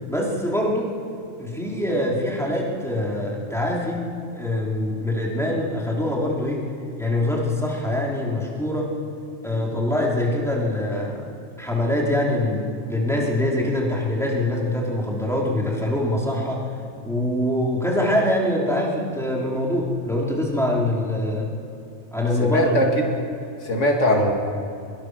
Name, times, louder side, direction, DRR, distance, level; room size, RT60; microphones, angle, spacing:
voice 1, 0.1-1.0 1.4-6.7 7.0-8.9 9.4-11.3 11.6-16.7 17.0-21.5 22.1-22.9, left 1 dB, ahead, -3 dB, 3.7 m, -24 dB
voice 2, 22.4-23.0 23.6-24.3, equal, 90° left, 1 dB, 2.7 m, -20 dB
22.5 x 22.0 x 6.4 m, 2.6 s
omnidirectional pair, 1.2 m